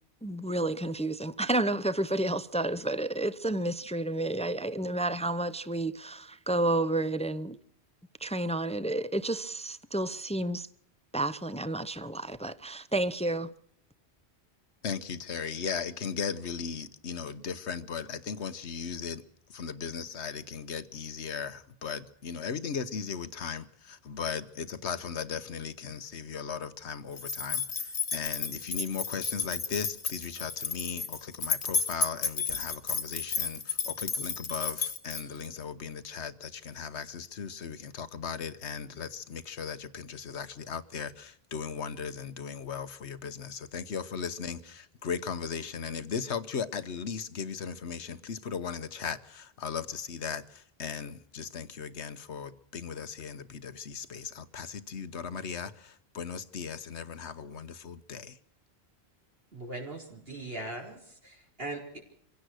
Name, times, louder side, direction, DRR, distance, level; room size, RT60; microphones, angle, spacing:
voice 1, 0.2-7.6 8.2-10.7 11.1-13.5, right 2 dB, 10° left, 0.6 m, -30 dB
voice 2, 14.8-58.4, left 6 dB, 85° left, 1.4 m, -37 dB
sound 1, 27.2-35.5, left 4 dB, 50° left, 1.3 m, -32 dB
voice 3, 59.5-62.0, right 2 dB, 60° right, 4.7 m, -40 dB
25.0 x 16.5 x 6.4 m
omnidirectional pair, 1.1 m